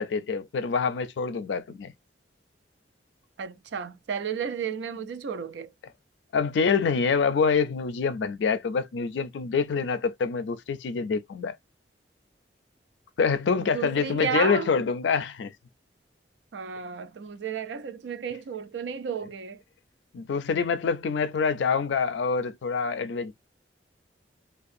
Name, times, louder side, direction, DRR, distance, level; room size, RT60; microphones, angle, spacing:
voice 1, 0.0-1.9 6.3-11.6 13.2-15.5 20.1-23.3, left 5 dB, 80° left, 0.4 m, -26 dB
voice 2, 3.4-5.7 13.6-14.7 16.5-19.6, right 6 dB, 80° right, 0.4 m, -33 dB
2.5 x 2.3 x 2.4 m
head